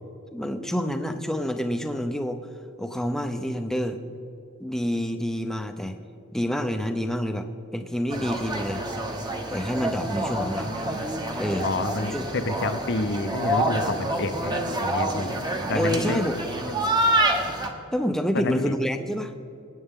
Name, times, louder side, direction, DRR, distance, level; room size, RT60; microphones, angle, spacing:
voice 1, 0.3-2.4 2.8-4.0 4.6-6.0 6.3-7.5 7.7-8.8 9.5-10.8 11.4-11.7 12.1-12.3 15.7-16.4 17.9-19.3, equal, ahead, 6 dB, 0.7 m, -28 dB
sound 1, 8.1-17.7, right 1 dB, 20° right, 1.1 m, -27 dB
voice 2, 11.6-15.4 15.7-16.2 18.3-18.8, left 2 dB, 55° left, 10 dB, 0.8 m, -29 dB
23.0 x 9.3 x 3.7 m, 2.7 s
head